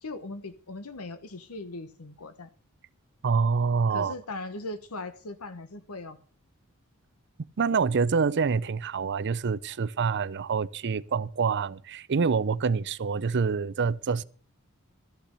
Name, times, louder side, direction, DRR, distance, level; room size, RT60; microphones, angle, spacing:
voice 1, 0.0-2.5 3.9-6.2, left 2 dB, 85° left, 1.2 m, -39 dB
voice 2, 3.2-4.1 7.6-14.2, right 5 dB, 50° right, 0.5 m, -26 dB
13.5 x 6.8 x 7.5 m
head